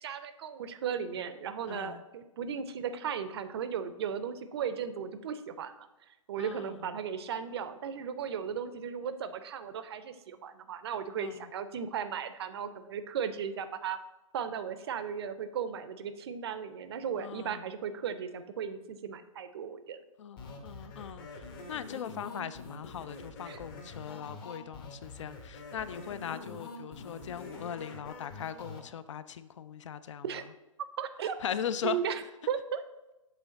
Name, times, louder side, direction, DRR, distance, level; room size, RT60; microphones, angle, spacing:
voice 1, 0.0-5.9 6.3-14.0 14.3-20.0 23.5-23.6 30.2-30.4 31.0-31.4 31.8-32.8, right 7 dB, 45° right, 11 dB, 0.5 m, -36 dB
voice 2, 1.7-2.0 6.4-6.8 11.2-11.5 17.2-17.6 20.2-21.4 21.7-30.2 31.4-32.0, left 8 dB, 60° left, 14 dB, 0.4 m, -39 dB
sound 1, 20.4-28.8, left 3 dB, 40° left, 1.0 m, -45 dB
7.6 x 3.5 x 3.9 m, 1.0 s
figure-of-eight pair, 130°, 18 cm